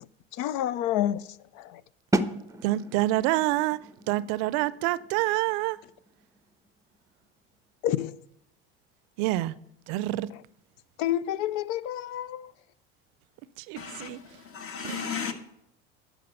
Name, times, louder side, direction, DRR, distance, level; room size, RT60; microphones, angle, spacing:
voice 1, 0.3-1.8 7.8-8.2 10.3-10.4 11.0-12.5, left 12 dB, 65° left, 0.5 m, -29 dB
sound 1, 2.1-7.8, right 1 dB, 10° right, 0.6 m, -35 dB
voice 2, 2.6-3.8 4.1-5.8 9.2-9.5 9.9-10.3 13.7-14.2 14.8-15.2, right 17 dB, 65° right, 0.5 m, -27 dB
voice 3, 13.8-15.3, left 7 dB, 45° left, 1.7 m, -35 dB
11.5 x 5.0 x 6.7 m
hypercardioid pair, 75°, 31 cm